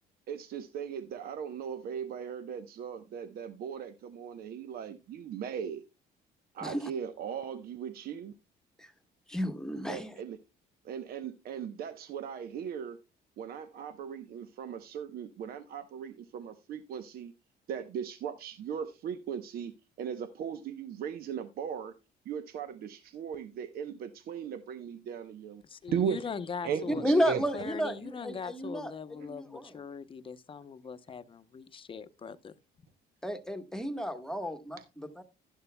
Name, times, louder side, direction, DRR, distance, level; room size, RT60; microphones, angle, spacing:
voice 1, 0.3-5.8 6.5-8.3 9.9-10.4 10.8-13.0 13.4-17.3 17.7-19.7 20.0-21.9 22.2-25.6 25.9-26.3 26.6-27.4 29.2-29.3, right 8 dB, 65° right, 0.8 m, -38 dB
voice 2, 9.3-10.1 27.0-29.8 33.2-35.2, equal, 5° left, 1.2 m, -32 dB
voice 3, 25.6-27.0 27.5-32.5, left 6 dB, 30° left, 0.8 m, -41 dB
11.5 x 11.0 x 2.2 m
cardioid pair, 110°, 17 cm